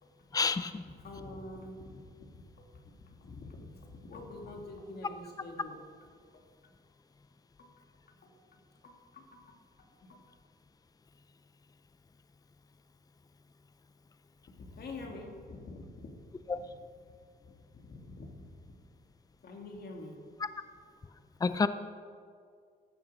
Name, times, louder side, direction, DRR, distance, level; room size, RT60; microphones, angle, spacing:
voice 1, 0.3-0.9 16.5-16.6 20.4-20.5 21.4-21.7, left 4 dB, 20° left, 12 dB, 0.5 m, -29 dB
voice 2, 1.0-5.8 6.6-6.7 7.6-7.7 8.1-9.4 10.0-10.2 14.6-16.1 16.5-16.6 17.4-18.7 19.4-20.2, left 2 dB, 55° left, 1 dB, 2.2 m, -47 dB
14.5 x 6.7 x 5.3 m, 2.1 s
cardioid pair, 90°, 20 cm